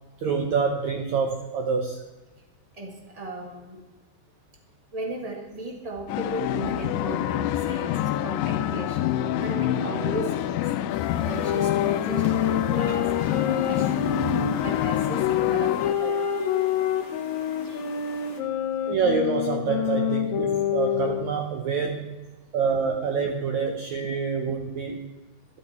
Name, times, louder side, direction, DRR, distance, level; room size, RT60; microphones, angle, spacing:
voice 1, 0.2-2.0 18.8-22.2 22.5-25.1, right 5 dB, 80° right, 3 dB, 1.6 m, -26 dB
voice 2, 3.1-3.8 4.9-9.0 9.4-10.9 11.2-13.3 13.6-14.2 14.6-15.7 16.0-16.1, right 1 dB, 40° right, 0 dB, 0.5 m, -35 dB
sound 1, 6.1-15.9, left 12 dB, 85° left, 2.6 m, -27 dB
sound 2, 10.9-18.4, left 4 dB, 50° left, 1.8 m, -42 dB
sound 3, 11.4-21.4, left 9 dB, 70° left, 1.8 m, -27 dB
14.0 x 12.0 x 4.4 m, 1.2 s
omnidirectional pair, 4.5 m